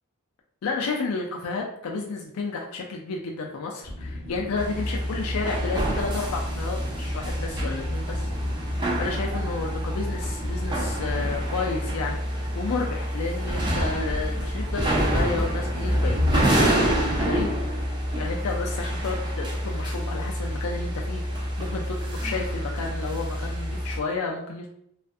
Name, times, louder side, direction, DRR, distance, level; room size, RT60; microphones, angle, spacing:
voice 1, 0.6-24.7, left 4 dB, 80° left, 0 dB, 0.4 m, -32 dB
sound 1, 3.8-11.4, left 1 dB, 15° left, 0.7 m, -37 dB
sound 2, 4.6-24.0, equal, 20° right, 0.4 m, -27 dB
2.4 x 2.3 x 2.5 m, 0.71 s
head